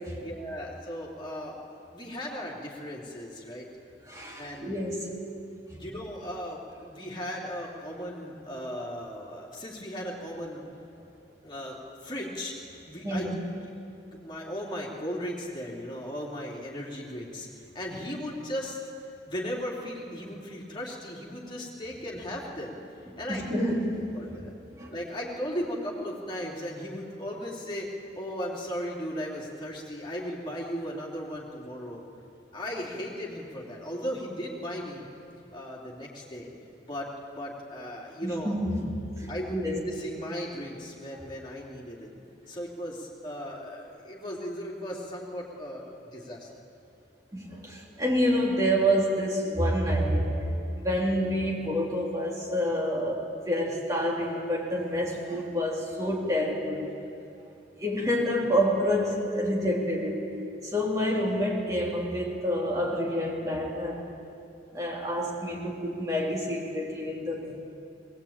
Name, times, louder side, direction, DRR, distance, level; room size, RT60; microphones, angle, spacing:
voice 1, 0.2-1.6 1.9-3.7 4.4-4.7 5.7-10.6 11.4-12.5 12.9-13.3 14.1-18.8 19.3-22.8 23.2-23.5 24.1-24.5 24.9-32.0 32.5-35.1 35.5-36.5 36.9-37.1 37.4-38.6 39.2-42.2 42.5-45.8 46.1-46.5, equal, 25° left, -3 dB, 3.2 m, -36 dB
voice 2, 4.1-5.2 13.0-13.4 23.3-24.4 24.7-24.9 38.2-39.8 47.3-50.3 50.7-56.9 57.8-60.3 60.6-64.1 64.7-67.6, equal, 20° right, -3 dB, 3.5 m, -28 dB
20.0 x 19.0 x 8.9 m, 2.6 s
head